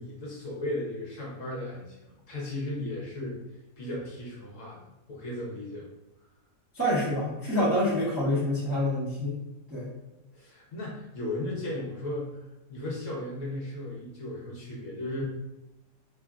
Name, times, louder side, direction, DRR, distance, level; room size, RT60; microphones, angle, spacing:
voice 1, 0.0-3.4 3.8-4.8 5.1-5.9 10.3-15.2, left 1 dB, 60° left, -4 dB, 1.1 m, -36 dB
voice 2, 6.7-9.4 9.7-9.9, left 1 dB, 15° right, -9 dB, 0.6 m, -27 dB
3.0 x 2.4 x 2.3 m, 0.96 s
omnidirectional pair, 1.5 m